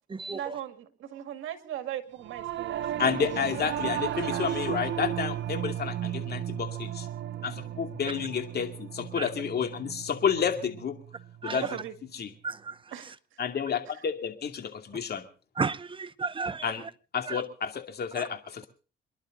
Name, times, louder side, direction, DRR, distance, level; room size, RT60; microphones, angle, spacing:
voice 1, 0.3-3.1 4.3-4.8 7.4-7.6 11.5-11.9 12.9-13.1, right 11 dB, 85° right, 2.0 m, -39 dB
Singing / Musical instrument, 2.2-11.8, right 11 dB, 65° right, 0.9 m, -35 dB
voice 2, 3.0-7.1 7.4-11.0 11.4-11.7 12.1-12.3 13.4-15.3 16.6-16.8 17.1-18.7, left 7 dB, 55° left, 2.5 m, -30 dB
voice 3, 12.4-12.7 15.6-16.6 17.3-17.4, right 4 dB, 25° right, 0.8 m, -32 dB
27.5 x 11.5 x 3.8 m
cardioid pair, 90°, 20 cm